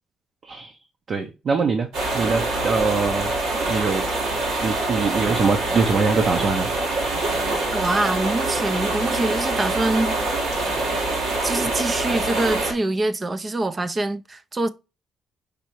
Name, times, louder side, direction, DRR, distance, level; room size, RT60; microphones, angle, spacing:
voice 1, 0.4-0.8 1.1-1.9 2.1-3.3 3.7-4.0 4.6-6.7, right 4 dB, 50° right, 0.8 m, -23 dB
sound 1, 1.9-12.7, right 2 dB, 85° right, 1.8 m, -25 dB
voice 2, 7.7-10.3 11.4-14.7, right 2 dB, 30° right, 0.5 m, -24 dB
5.3 x 3.3 x 3.0 m
cardioid pair, 90°, 0 cm